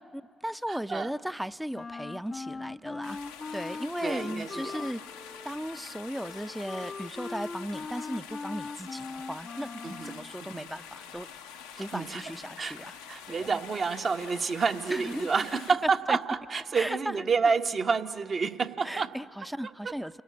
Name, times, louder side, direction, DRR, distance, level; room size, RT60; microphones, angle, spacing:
voice 1, 0.1-3.2 3.5-5.0 5.4-9.7 10.0-11.3 11.8-12.9 13.3-13.6 14.9-16.2 16.7-17.2 18.8-20.2, equal, 5° right, 14 dB, 0.6 m, -36 dB
voice 2, 0.7-1.1 4.0-4.7 9.8-10.7 11.7-12.2 12.6-12.8 13.1-19.1 19.8-19.9, right 5 dB, 50° right, 6 dB, 1.2 m, -29 dB
Wind instrument woodwind instrument, 1.7-10.3, left 4 dB, 40° left, 0.5 m, -40 dB
sound 1, 3.0-15.7, left 7 dB, 90° left, 0.9 m, -46 dB
29.0 x 18.5 x 8.5 m, 2.2 s
hypercardioid pair, 40°, 0 cm